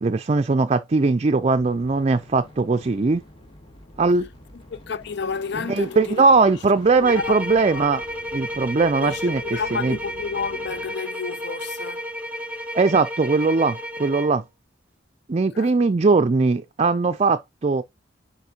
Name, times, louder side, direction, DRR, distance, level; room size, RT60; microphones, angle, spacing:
voice 1, 0.0-3.2 4.0-4.3 5.5-8.0 8.3-10.0 12.7-14.4 15.3-17.8, right 4 dB, 35° right, 0.4 m, -20 dB
sound 1, 1.4-10.9, left 1 dB, 30° left, 2.2 m, -47 dB
voice 2, 4.7-6.2 7.0-7.9 9.0-12.1 15.3-15.7, left 5 dB, 65° left, 0.5 m, -31 dB
sound 2, 7.0-14.4, equal, 5° right, 1.0 m, -32 dB
9.4 x 4.4 x 2.8 m
head